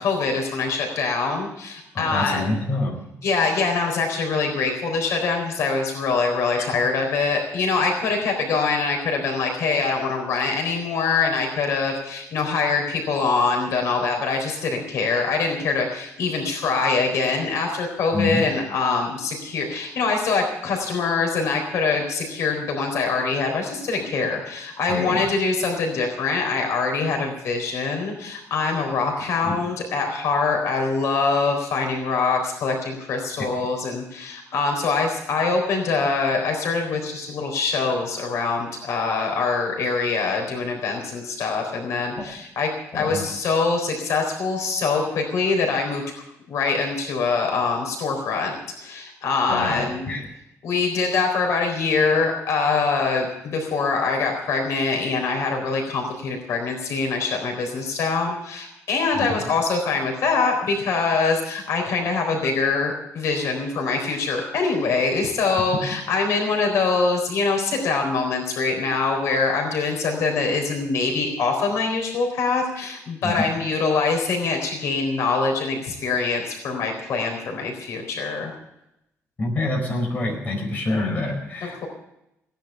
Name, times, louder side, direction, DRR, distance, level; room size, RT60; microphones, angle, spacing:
voice 1, 0.0-2.5 3.2-42.7 42.9-50.1 50.6-78.5 81.6-81.9, left 4 dB, 70° left, 2 dB, 3.9 m, -24 dB
voice 2, 1.9-3.0 6.6-6.7 18.1-18.4 24.9-25.2 29.4-29.5 42.2-42.3 42.9-43.3 49.5-50.3 73.2-73.3 79.4-81.9, left 2 dB, 30° left, 0 dB, 4.7 m, -26 dB
17.5 x 10.5 x 6.9 m, 0.84 s
cardioid pair, 170°, 5 cm